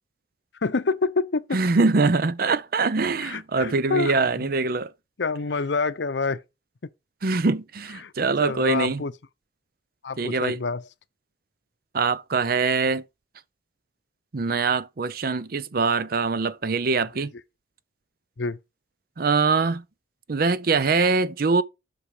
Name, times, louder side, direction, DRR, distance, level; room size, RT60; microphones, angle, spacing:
voice 1, 0.6-1.4 3.2-4.1 4.4-4.5 5.2-6.4 8.0-8.1 8.4-9.1 10.0-10.8 18.4-18.6, left 4 dB, 80° left, 0.7 m, -27 dB
voice 2, 1.5-4.9 7.2-9.1 10.2-10.6 11.9-13.0 14.3-17.3 19.2-19.8 20.3-21.6, right 4 dB, 55° right, 0.6 m, -23 dB
8.1 x 6.2 x 4.9 m
head